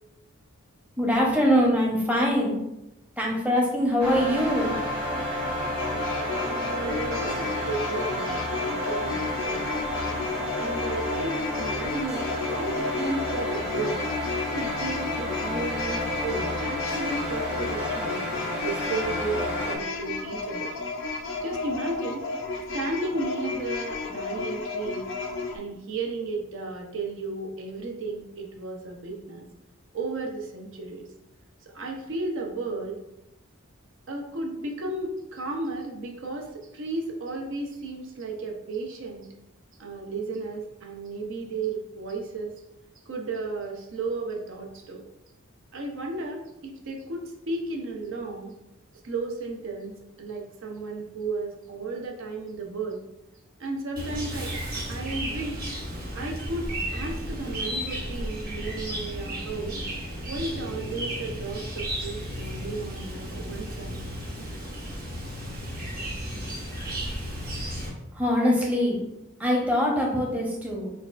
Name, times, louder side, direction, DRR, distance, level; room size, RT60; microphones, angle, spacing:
voice 1, 1.0-2.6 3.2-4.7 68.1-69.0 69.4-70.9, equal, 5° right, -3 dB, 0.7 m, -23 dB
sound 1, 4.0-19.8, left 1 dB, 25° right, 1.2 m, -31 dB
sound 2, 5.8-25.6, left 4 dB, 55° left, 0.5 m, -33 dB
voice 2, 6.4-9.7 10.6-14.1 14.5-18.2 18.6-20.7 21.4-22.3 22.7-25.1 25.5-29.4 29.9-31.1 31.6-33.0 34.1-39.3 39.8-42.5 43.1-45.0 45.7-48.5 49.0-53.0 53.6-54.5 54.9-55.6 56.1-59.8 60.3-64.0, right 3 dB, 60° right, 1 dB, 0.6 m, -34 dB
Chirp tweet, 54.0-67.9, equal, 40° right, 0.9 m, -34 dB
6.3 x 2.3 x 2.4 m, 0.89 s
head